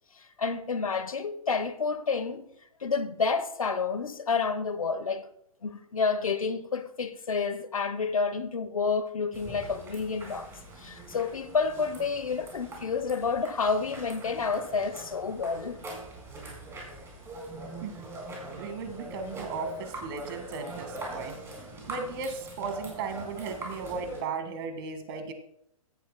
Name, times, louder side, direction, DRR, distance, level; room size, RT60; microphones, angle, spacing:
voice 1, 0.2-2.5 2.8-5.3 5.6-10.5 10.8-15.8, left 5 dB, 75° left, 1.1 m, -29 dB
sound 1, 9.3-24.2, right 2 dB, 15° right, 4.1 m, -42 dB
voice 2, 18.6-25.3, right 4 dB, 40° right, 1.9 m, -36 dB
16.5 x 10.5 x 2.2 m
figure-of-eight pair, 120°, 18 cm